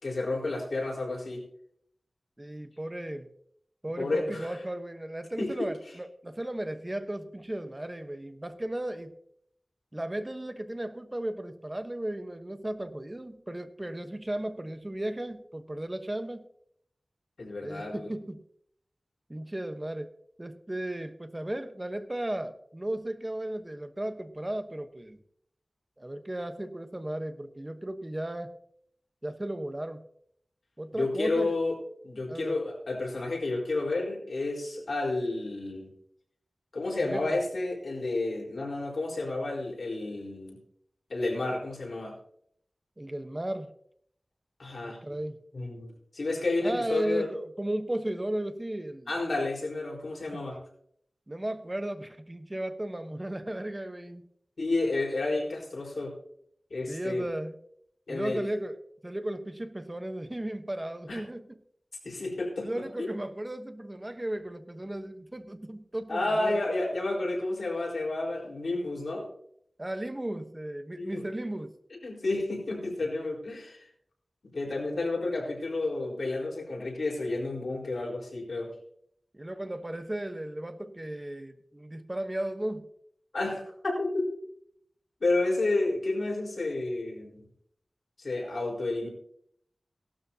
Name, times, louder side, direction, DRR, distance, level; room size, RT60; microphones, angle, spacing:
voice 1, 0.0-1.4 4.0-4.6 5.4-5.7 17.4-18.1 30.9-35.9 36.7-40.6 41.1-42.2 44.6-45.0 45.5-47.3 49.1-50.6 54.6-56.2 56.7-57.3 58.1-58.4 61.1-61.2 62.0-63.1 66.1-69.3 70.9-71.2 72.0-73.9 74.4-78.7 83.3-84.4 85.2-87.5 88.2-89.1, left 2 dB, 80° left, -2 dB, 4.3 m, -31 dB
voice 2, 2.4-3.3 3.8-9.1 9.9-16.4 17.6-18.4 19.3-20.1 20.4-25.2 26.0-28.5 29.2-30.0 30.8-31.5 32.3-32.5 37.0-37.4 43.0-43.7 44.7-45.4 46.6-49.1 50.3-50.4 51.3-54.2 56.9-57.5 58.1-58.8 59.0-61.4 62.6-66.6 69.8-71.7 79.3-82.9, right 1 dB, 25° right, 9 dB, 1.1 m, -35 dB
16.5 x 12.5 x 2.8 m, 0.67 s
wide cardioid pair, 70°, 0 cm